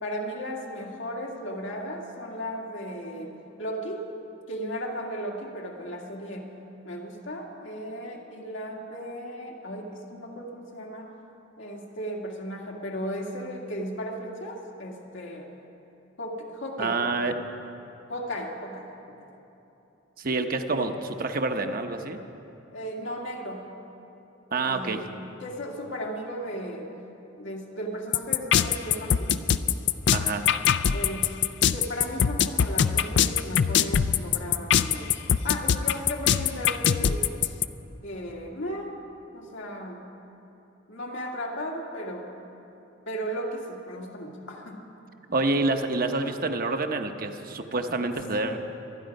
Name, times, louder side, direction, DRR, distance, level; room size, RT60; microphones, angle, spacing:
voice 1, 0.0-3.3 3.6-4.0 4.5-6.5 6.8-11.1 11.6-15.5 16.2-17.0 18.1-18.9 19.2-19.3 22.7-23.7 24.6-26.9 27.4-29.3 30.9-31.3 31.7-35.2 35.4-37.2 38.0-39.0 39.3-40.1 40.9-42.3 43.1-44.9 48.3-48.4, equal, 85° left, -1 dB, 2.1 m, -35 dB
voice 2, 16.8-17.4 20.2-22.2 24.5-25.0 30.1-30.5 45.3-48.6, right 3 dB, 50° right, 6 dB, 0.8 m, -27 dB
sound 1, 28.1-37.6, left 8 dB, 65° left, 0.4 m, -22 dB
24.5 x 10.0 x 5.3 m, 2.9 s
head